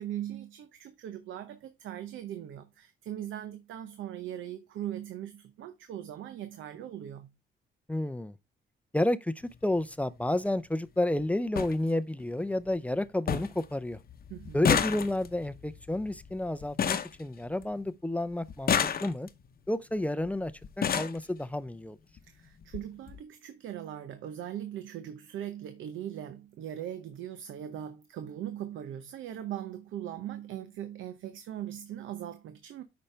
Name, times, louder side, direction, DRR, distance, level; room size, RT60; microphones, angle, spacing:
voice 1, 0.0-7.3 14.3-14.6 22.2-32.8, right 11 dB, 75° right, 0.8 m, -40 dB
voice 2, 7.9-8.3 8.9-14.0 14.5-18.7 19.0-19.3 19.7-20.5 20.8-22.0, left 1 dB, 5° left, 0.5 m, -30 dB
sound 1, 9.4-9.6 10.9-11.0 11.2-11.3 11.6-11.7 12.2-12.7 12.9-13.0 13.3-13.7 13.9-17.9 18.5-19.5 20.3-20.4 20.6-21.2 22.2-22.3 22.6-22.8 23.1-23.2, left 7 dB, 50° left, 0.8 m, -30 dB
8.5 x 5.3 x 3.3 m
cardioid pair, 90°, 20 cm